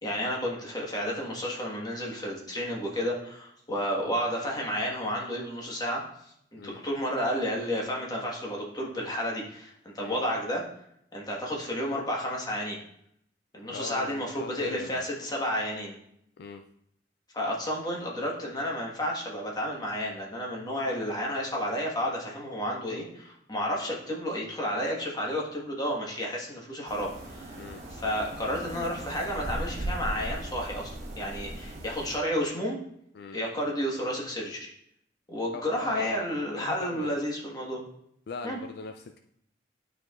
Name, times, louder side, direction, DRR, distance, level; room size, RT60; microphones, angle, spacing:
voice 1, 0.0-6.0 6.5-10.6 11.1-12.8 13.5-16.0 17.3-27.6 27.9-32.8 33.3-34.7 35.3-37.8 38.4-38.6, equal, 25° left, -2 dB, 1.4 m, -31 dB
voice 2, 13.7-15.0 16.4-16.6 27.6-27.8 33.1-33.4 35.5-37.1 38.3-39.2, left 4 dB, 60° left, 6 dB, 0.4 m, -41 dB
sound 1, 26.9-32.2, right 1 dB, 35° right, 1.3 m, -38 dB
11.0 x 4.7 x 2.4 m, 0.73 s
head